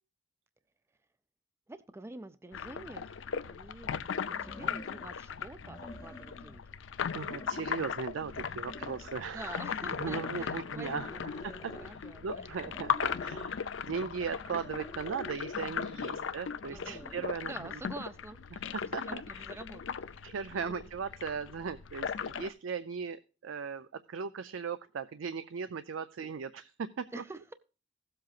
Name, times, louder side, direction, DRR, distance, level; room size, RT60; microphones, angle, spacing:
voice 1, 1.7-6.8 9.2-12.6 13.0-13.2 16.0-16.4 16.7-18.7 19.0-20.9 26.2-26.3 27.1-27.5, right 2 dB, 15° right, 11 dB, 0.4 m, -48 dB
sound 1, 2.5-22.5, left 7 dB, 75° left, 0.5 m, -38 dB
sound 2, 2.8-2.9 4.2-5.1 5.6-6.6 7.0-7.9 8.3-9.3 9.8-11.9 12.7-13.5 14.3-15.4 16.6-17.3, left 1 dB, 20° left, 0.8 m, -49 dB
voice 2, 7.1-9.6 10.0-11.1 12.2-17.5 18.5-18.6 18.9-19.4 20.2-27.2, right 6 dB, 85° right, 12 dB, 0.4 m, -38 dB
16.5 x 7.7 x 2.4 m, 0.34 s
head